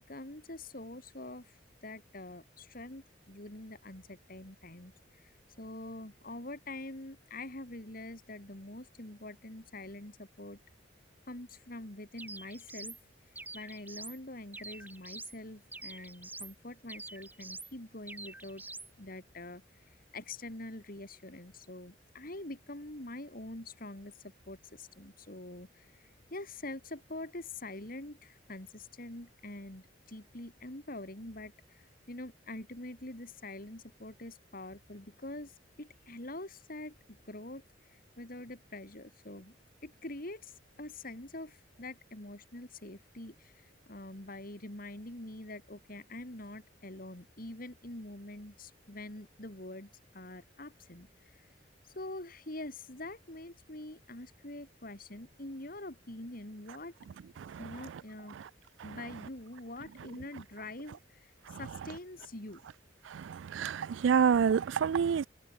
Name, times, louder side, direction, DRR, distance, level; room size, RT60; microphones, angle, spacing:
voice 1, 0.1-5.3 5.6-10.6 11.3-13.0 13.5-18.6 19.0-19.6 19.9-24.1 24.5-37.0 37.3-39.5 39.8-51.5 51.8-56.9 57.6-58.4 58.8-62.6, left 2 dB, 50° left, 3.5 m, -45 dB
sound 1, 12.2-13.0 13.3-14.2 14.5-15.4 15.7-16.5 16.9-17.7 18.1-18.9, right 2 dB, 10° right, 7.7 m, -46 dB
voice 2, 63.3-65.3, right 7 dB, 80° right, 0.4 m, -27 dB
head